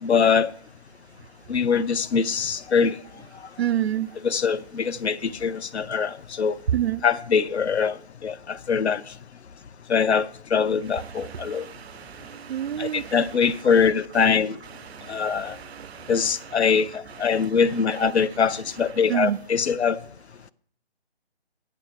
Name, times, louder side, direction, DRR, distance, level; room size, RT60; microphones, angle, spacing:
voice 1, 0.0-0.5 1.5-3.0 4.2-6.6 7.0-8.0 8.2-9.0 9.9-11.7 12.8-14.6 15.1-15.5 16.1-20.0, left 6 dB, 85° left, 0.5 m, -23 dB
voice 2, 3.6-4.1 6.7-7.0 11.1-13.2 14.9-16.1 17.3-17.5 19.1-19.4, right 10 dB, 70° right, 0.5 m, -29 dB
9.9 x 7.0 x 4.5 m
figure-of-eight pair, 150°, 32 cm